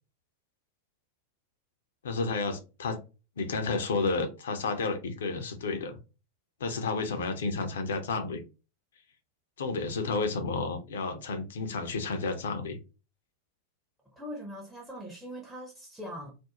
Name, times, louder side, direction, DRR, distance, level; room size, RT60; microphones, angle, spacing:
voice 1, 2.0-3.0 3.4-6.0 6.6-8.4 9.6-12.8, left 3 dB, 60° left, 0.5 m, -31 dB
voice 2, 14.2-16.3, equal, ahead, 0.6 m, -41 dB
2.4 x 2.0 x 2.9 m
figure-of-eight pair, 90°, 0 cm